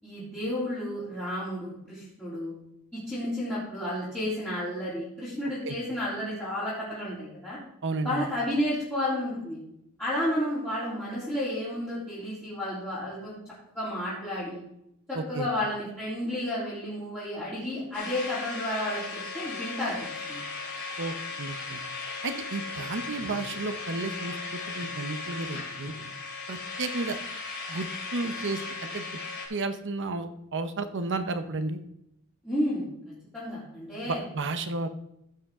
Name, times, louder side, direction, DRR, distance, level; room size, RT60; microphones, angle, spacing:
voice 1, 0.0-2.5 2.9-7.6 8.0-9.6 10.0-13.4 13.7-14.6 15.1-19.9 20.3-20.4 32.4-32.8 33.3-34.2, left 1 dB, 5° left, -12 dB, 3.4 m, -31 dB
voice 2, 7.8-8.3 15.1-15.5 21.0-21.8 22.2-25.9 26.5-27.2 27.7-27.9 28.1-29.1 29.5-31.8 34.1-34.9, right 3 dB, 55° right, 9 dB, 0.9 m, -32 dB
sound 1, 17.9-29.5, left 4 dB, 50° left, 3.3 m, -37 dB
15.5 x 5.7 x 3.7 m, 0.78 s
head